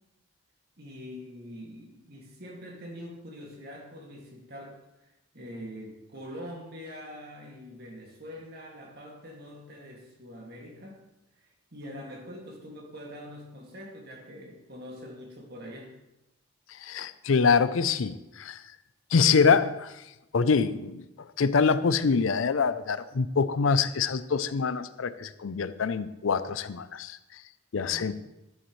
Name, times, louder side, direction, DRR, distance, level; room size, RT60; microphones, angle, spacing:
voice 1, 0.8-4.8 5.3-11.0 11.4-11.5 11.7-15.9 27.9-28.1, equal, 50° right, 0 dB, 2.2 m, -44 dB
voice 2, 16.8-18.6 19.1-19.9 20.3-21.1 21.4-27.2 27.7-28.1, left 5 dB, 80° left, 14 dB, 0.5 m, -25 dB
12.5 x 10.5 x 3.2 m, 0.95 s
head